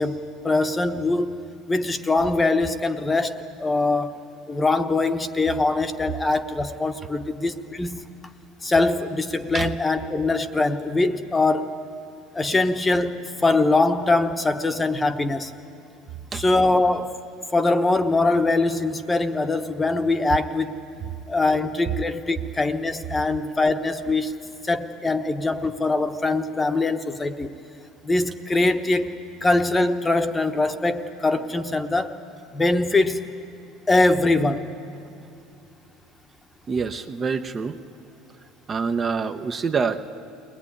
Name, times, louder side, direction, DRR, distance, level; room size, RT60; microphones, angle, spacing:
voice 1, 0.0-1.4 1.7-4.2 4.5-8.1 8.6-11.8 12.3-15.5 16.3-17.1 17.5-20.8 21.3-24.4 24.6-27.5 28.0-29.1 29.4-32.1 32.5-33.3 33.9-34.7, left 2 dB, 15° left, 9 dB, 1.0 m, -22 dB
voice 2, 36.7-37.8 38.7-40.1, right 5 dB, 25° right, 7 dB, 0.7 m, -26 dB
22.5 x 19.0 x 9.9 m, 2.5 s
cardioid pair, 150°, 0 cm